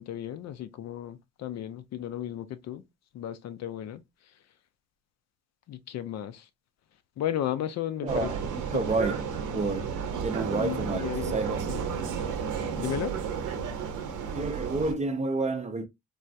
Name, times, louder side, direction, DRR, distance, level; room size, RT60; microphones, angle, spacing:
voice 1, 0.0-2.8 3.1-4.0 5.7-6.5 7.2-8.5 10.5-11.4 11.7-11.9 12.8-13.1, left 11 dB, 60° left, 0.5 m, -34 dB
voice 2, 8.0-9.2 9.5-9.9 10.2-11.8 14.3-15.9, right 3 dB, 25° right, 0.5 m, -30 dB
Vehicle, 8.1-14.9, right 6 dB, 85° right, 0.7 m, -32 dB
3.3 x 2.3 x 2.6 m
cardioid pair, 90°, 30 cm